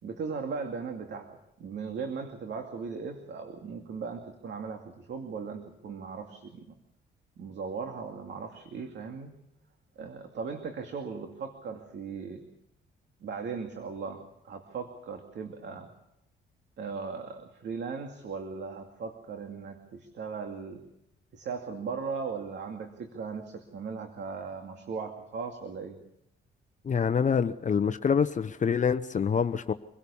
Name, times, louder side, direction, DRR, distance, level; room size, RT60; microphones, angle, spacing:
voice 1, 0.0-6.7 7.4-9.3 10.0-12.5 13.2-15.9 16.8-20.8 21.3-26.0, right 5 dB, 60° right, 4 dB, 2.5 m, -38 dB
voice 2, 26.8-29.7, left 6 dB, 40° left, 10 dB, 0.9 m, -26 dB
25.5 x 17.0 x 7.1 m, 0.82 s
cardioid pair, 90°, 20 cm